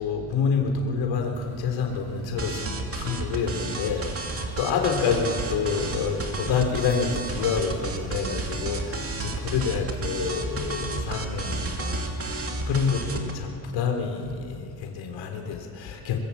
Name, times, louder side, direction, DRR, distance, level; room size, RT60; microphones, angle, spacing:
voice 1, 0.0-16.2, left 6 dB, 80° left, 3 dB, 3.6 m, -28 dB
sound 1, 1.3-13.0, right 3 dB, 55° right, 3.0 m, -39 dB
sound 2, 2.4-13.3, right 3 dB, 30° right, 2.5 m, -32 dB
24.0 x 20.5 x 8.5 m, 2.6 s
cardioid pair, 155°, 45 cm